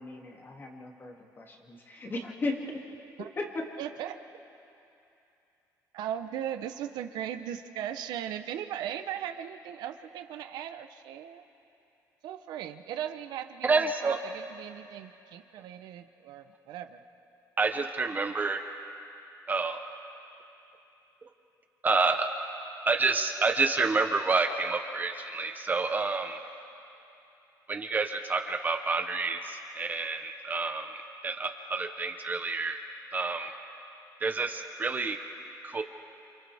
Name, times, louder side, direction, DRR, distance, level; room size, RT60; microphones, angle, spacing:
voice 1, 0.0-2.8 3.2-3.7, left 2 dB, 30° left, 0 dB, 2.5 m, -36 dB
voice 2, 3.8-4.1 5.9-11.4 12.2-17.0, right 10 dB, 85° right, 8 dB, 0.9 m, -38 dB
voice 3, 13.6-14.2 17.6-18.6 19.5-19.8 21.8-22.3 22.9-26.4 27.7-32.8 33.1-33.5 34.2-35.2 35.6-35.8, right 4 dB, 25° right, 5 dB, 1.0 m, -28 dB
29.0 x 27.5 x 3.5 m, 2.8 s
cardioid pair, 125°, 7 cm